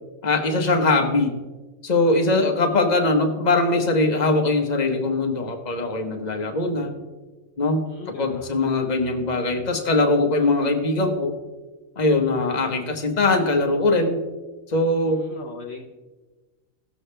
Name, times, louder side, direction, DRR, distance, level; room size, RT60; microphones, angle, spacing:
voice 1, 0.2-1.4 1.8-6.9 7.6-7.8 8.2-11.3 12.0-14.2 14.7-15.2, left 2 dB, 35° left, 4 dB, 1.2 m, -21 dB
voice 2, 7.9-8.6 15.0-15.9, left 5 dB, 60° left, 2 dB, 0.9 m, -40 dB
17.5 x 7.1 x 3.3 m, 1.3 s
omnidirectional pair, 1.4 m